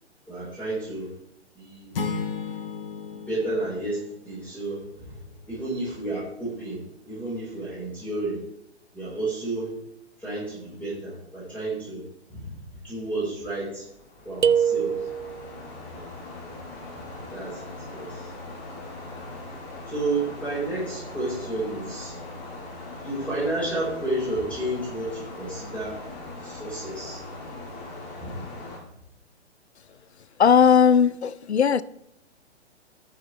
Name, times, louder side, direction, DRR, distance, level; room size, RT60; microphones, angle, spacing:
voice 1, 0.3-1.1 1.5-1.9 3.1-5.2 5.5-6.8 7.0-8.4 8.9-9.7 10.2-12.0 12.3-12.6 12.8-13.8 14.2-14.9 15.9-16.1 17.3-17.6 17.9-18.3 19.9-22.2 23.0-25.9 26.4-27.2 28.2-28.3, right 2 dB, 5° left, -8 dB, 4.5 m, -31 dB
sound 1, 1.9-4.7, left 5 dB, 50° left, 1.7 m, -34 dB
sound 2, 13.7-28.8, left 2 dB, 25° left, 2.1 m, -40 dB
sound 3, 14.4-15.5, right 7 dB, 90° right, 0.5 m, -23 dB
voice 2, 30.4-31.8, left 7 dB, 65° left, 18 dB, 0.7 m, -18 dB
18.0 x 6.8 x 3.2 m, 0.78 s
figure-of-eight pair, 125°, 35 cm